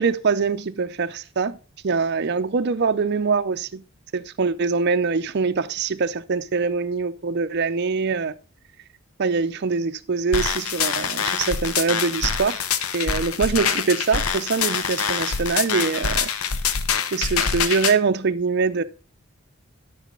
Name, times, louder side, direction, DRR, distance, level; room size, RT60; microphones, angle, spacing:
voice 1, 0.0-1.6 1.8-3.8 4.1-8.3 9.2-12.7 12.9-16.3 17.1-18.8, right 4 dB, 50° right, 0.5 m, -23 dB
sound 1, 10.3-17.9, left 6 dB, 80° left, 0.7 m, -25 dB
10.5 x 6.1 x 3.8 m
head